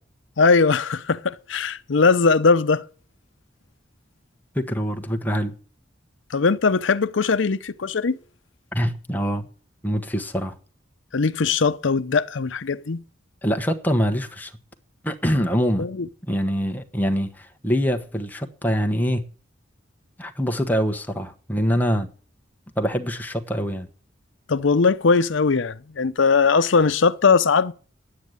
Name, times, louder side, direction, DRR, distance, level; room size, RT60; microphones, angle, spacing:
voice 1, 0.4-2.8 6.3-8.2 11.1-13.0 15.8-16.1 24.5-27.7, left 4 dB, 80° left, 0.7 m, -20 dB
voice 2, 4.5-5.6 8.7-9.4 9.8-10.5 13.4-14.5 15.0-15.9 16.3-19.3 20.2-22.1 22.8-23.9, equal, 10° left, 1.1 m, -24 dB
10.5 x 9.2 x 8.0 m
head